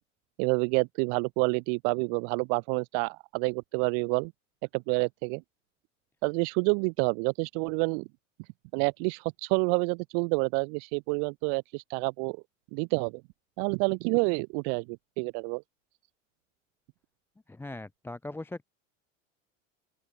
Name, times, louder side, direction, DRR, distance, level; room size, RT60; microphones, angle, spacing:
voice 1, 0.4-4.3 4.7-5.4 6.2-8.1 8.7-12.4 12.7-13.2 13.6-15.6, right 40 dB or more, 55° right, 0.7 m, -28 dB
voice 2, 17.5-18.6, left 2 dB, 5° left, 0.5 m, -40 dB
open air
hypercardioid pair, 85°, 39 cm